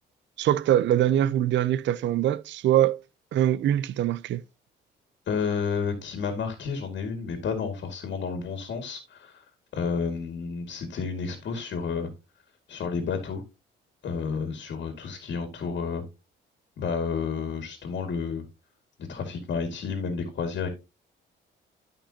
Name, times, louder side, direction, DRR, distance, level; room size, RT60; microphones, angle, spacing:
voice 1, 0.4-3.0 3.3-4.4, right 12 dB, 65° right, 0.5 m, -23 dB
voice 2, 5.3-9.5 9.7-12.1 12.7-13.4 14.0-16.0 16.8-18.4 19.1-20.7, left 5 dB, 65° left, 2.0 m, -31 dB
13.0 x 5.3 x 2.8 m
cardioid pair, 90°, 20 cm